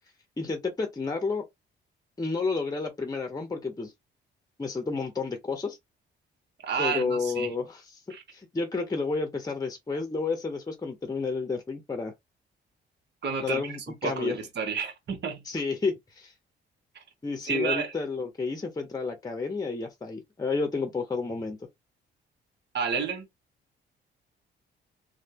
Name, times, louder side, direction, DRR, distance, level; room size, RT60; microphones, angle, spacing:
voice 1, 0.4-1.4 2.2-3.9 4.6-5.8 6.8-12.1 13.4-14.4 15.4-16.3 17.2-21.6, left 4 dB, 20° left, 0.8 m, -31 dB
voice 2, 6.6-7.5 8.1-8.2 13.2-13.7 14.0-15.4 17.5-17.9 22.7-23.2, right 5 dB, 60° right, 1.5 m, -30 dB
3.2 x 2.7 x 2.8 m
cardioid pair, 90°, 20 cm